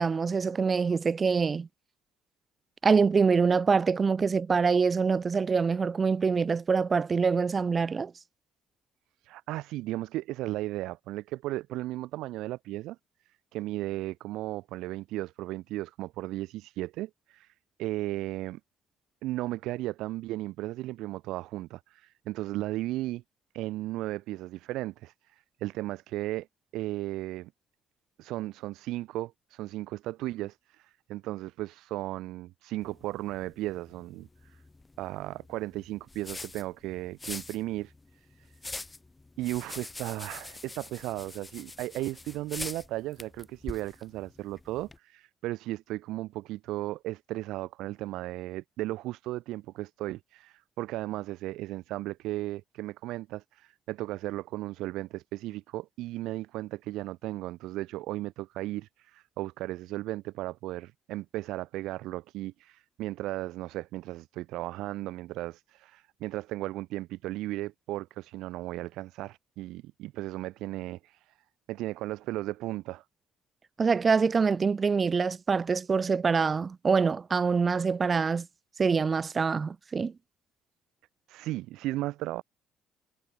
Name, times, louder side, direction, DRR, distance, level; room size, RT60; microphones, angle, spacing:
voice 1, 0.0-1.7 2.8-8.1 73.8-78.5 78.8-80.1, right 5 dB, 35° right, 0.5 m, -25 dB
voice 2, 9.2-13.0 13.5-17.5 17.8-18.6 19.2-23.2 23.5-26.5 26.7-27.5 28.2-34.6 35.0-38.5 39.4-71.3 71.7-73.0 81.3-82.4, right 17 dB, 75° right, 0.6 m, -35 dB
sound 1, 32.8-45.0, left 2 dB, 20° left, 0.7 m, -45 dB
supercardioid pair, 75°, 0 cm